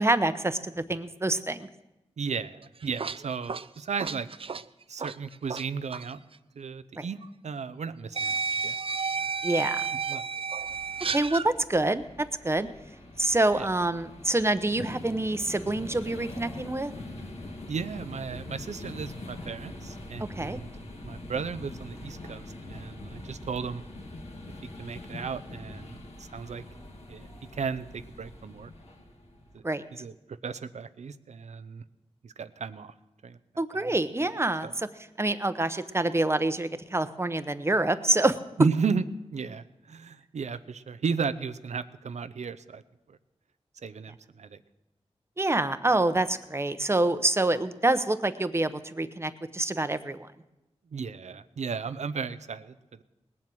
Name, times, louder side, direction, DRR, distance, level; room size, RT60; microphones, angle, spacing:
voice 1, 0.0-1.7 7.0-7.1 9.4-9.8 11.1-12.0 12.4-12.7 13.2-16.9 20.3-20.6 29.6-29.8 33.6-34.9 35.2-38.4 45.4-50.3, right 2 dB, 20° right, 11 dB, 0.9 m, -26 dB
voice 2, 2.2-4.3 4.9-6.2 6.6-7.2 7.4-8.8 10.1-10.2 13.5-13.7 17.7-20.7 21.0-23.8 24.8-26.6 27.1-28.7 29.5-29.6 29.9-30.1 30.4-31.8 32.2-32.9 33.2-33.4 33.7-33.9 34.6-34.7 38.6-39.0 39.3-42.8 43.1-43.2 43.8-44.6 50.9-52.7, right 5 dB, 90° right, 13 dB, 0.6 m, -34 dB
sound 1, 2.6-5.6 5.9-6.1 7.2-7.3 8.1-11.5, right 5 dB, 55° right, 0.5 m, -32 dB
sound 2, 10.5-29.6, left 2 dB, 70° left, 2.5 m, -43 dB
19.5 x 7.5 x 7.8 m, 0.99 s
wide cardioid pair, 65°, 11 cm